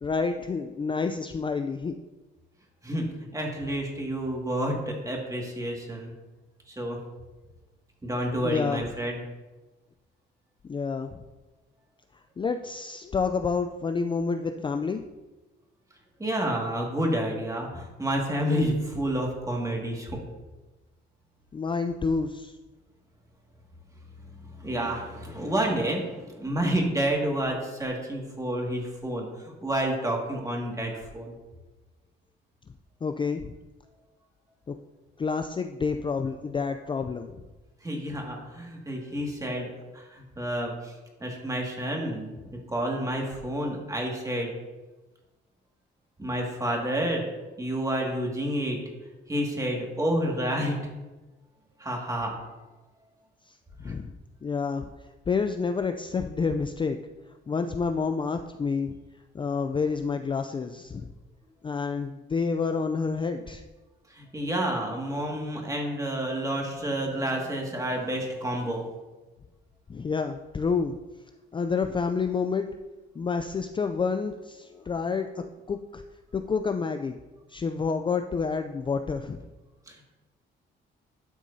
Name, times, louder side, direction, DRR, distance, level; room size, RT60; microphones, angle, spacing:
voice 1, 0.0-1.9 8.4-8.9 10.7-11.2 12.4-15.0 21.5-22.6 33.0-33.5 34.7-34.8 35.2-37.4 53.5-54.2 54.4-54.9 55.3-57.0 57.5-58.9 59.3-61.1 61.6-63.6 69.9-70.9 71.5-72.7 73.2-76.0 76.3-77.2 77.5-79.4, left 5 dB, 25° left, 6 dB, 0.4 m, -29 dB
voice 2, 2.8-6.1 6.7-7.0 8.0-9.2 16.2-20.2 24.6-31.3 37.8-44.5 46.2-47.3 47.6-48.8 49.3-50.8 51.8-52.3 53.8-53.9 64.1-68.8 79.9-80.0, right 1 dB, 15° right, 0 dB, 2.0 m, -29 dB
11.5 x 6.2 x 2.7 m, 1.2 s
cardioid pair, 90°, 20 cm